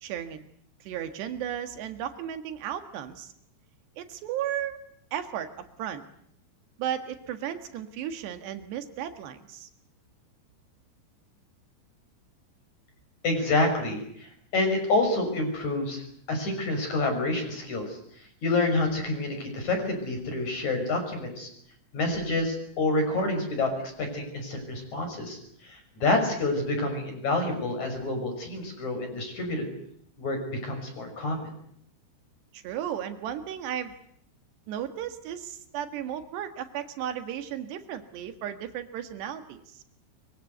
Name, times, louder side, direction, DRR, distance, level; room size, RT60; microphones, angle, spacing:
voice 1, 0.0-0.5 0.8-3.3 4.0-4.8 5.1-6.0 6.8-9.7 32.5-34.0 34.7-39.8, right 10 dB, 85° right, 8 dB, 3.9 m, -35 dB
voice 2, 13.2-16.0 16.3-18.0 18.4-21.5 21.9-29.6 30.2-31.4, left 2 dB, 45° left, 5 dB, 7.3 m, -28 dB
24.0 x 24.0 x 8.0 m, 0.67 s
omnidirectional pair, 4.8 m